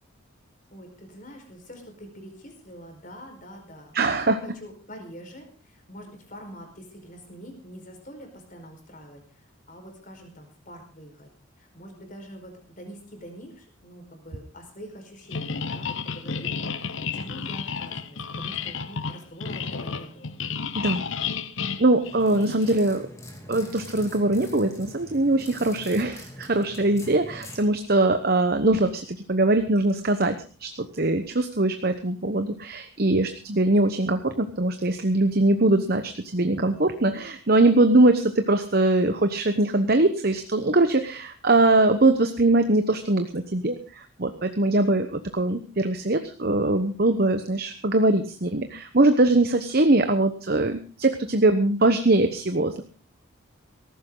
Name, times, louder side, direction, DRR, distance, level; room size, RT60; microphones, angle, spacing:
voice 1, 0.7-4.0 4.2-11.3 11.6-20.3, equal, 40° left, 4 dB, 4.9 m, -45 dB
voice 2, 3.9-4.4 20.8-21.0 21.8-23.1 23.5-52.8, right 2 dB, 45° right, 8 dB, 1.0 m, -22 dB
sound 1, 15.3-22.7, left 5 dB, 65° left, 1.0 m, -32 dB
sound 2, 22.0-27.6, left 1 dB, 15° left, 2.9 m, -43 dB
18.0 x 15.0 x 3.9 m, 0.36 s
head